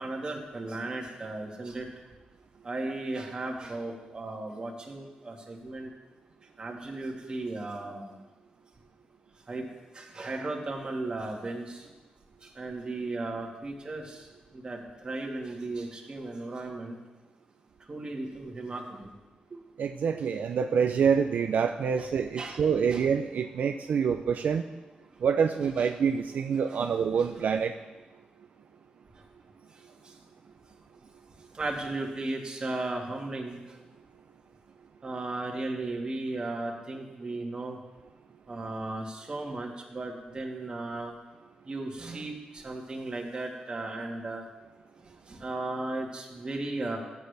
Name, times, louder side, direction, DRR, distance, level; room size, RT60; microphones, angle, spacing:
voice 1, 0.0-1.9 2.6-5.9 6.6-8.2 9.5-9.7 9.9-11.9 12.4-14.3 14.5-17.0 17.9-19.1 22.0-22.1 22.4-22.6 22.9-23.0 25.8-25.9 26.7-26.9 30.0-30.1 31.5-33.8 35.0-37.8 38.5-41.1 41.6-44.4 45.3-47.0, right 2 dB, 30° right, 0 dB, 1.6 m, -36 dB
voice 2, 19.8-24.6 25.2-27.8, right 6 dB, 75° right, 5 dB, 0.4 m, -26 dB
15.0 x 8.1 x 3.3 m, 1.2 s
wide cardioid pair, 150°, 3 cm